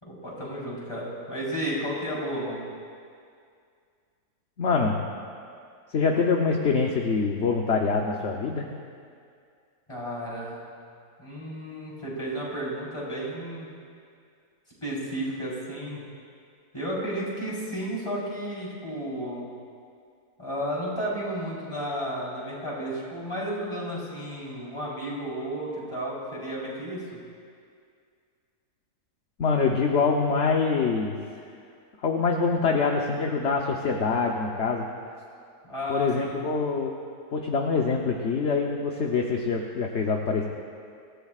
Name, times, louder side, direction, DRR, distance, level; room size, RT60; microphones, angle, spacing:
voice 1, 0.0-2.7 9.9-10.8 11.2-13.7 14.8-16.0 16.7-19.5 20.4-27.0 35.6-36.4, equal, 20° left, -7 dB, 4.2 m, -32 dB
voice 2, 4.6-5.0 5.9-8.7 29.4-31.2 32.0-34.9 35.9-36.9 37.3-40.4, left 4 dB, 50° left, 1 dB, 1.1 m, -25 dB
26.0 x 15.0 x 2.5 m, 2.3 s
omnidirectional pair, 1.7 m